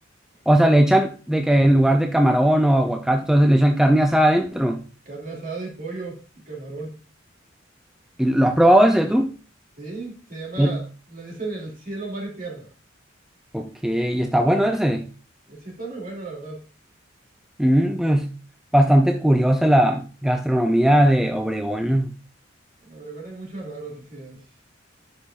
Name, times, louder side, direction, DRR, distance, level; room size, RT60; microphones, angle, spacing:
voice 1, 0.5-4.8 8.2-9.3 10.6-10.8 13.5-15.1 17.6-18.3 18.7-22.1, right 1 dB, 5° right, 0.4 m, -18 dB
voice 2, 5.1-6.9 9.8-12.7 15.5-16.6 22.8-24.4, right 3 dB, 45° right, 2.7 m, -35 dB
10.5 x 5.4 x 2.5 m
head